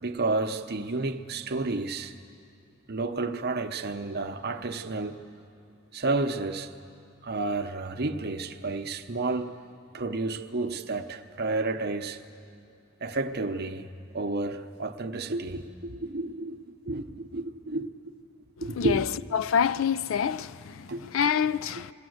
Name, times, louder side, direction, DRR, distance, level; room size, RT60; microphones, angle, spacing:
voice 1, 0.0-2.1 2.9-5.2 5.9-6.7 7.2-9.6 9.9-12.2 13.0-13.9 14.1-17.9 18.6-19.0 20.9-21.0 21.7-21.8, right 3 dB, 50° right, 0.8 m, -31 dB
voice 2, 19.3-20.8 21.1-21.9, left 7 dB, 65° left, 0.4 m, -26 dB
21.5 x 17.0 x 7.9 m
head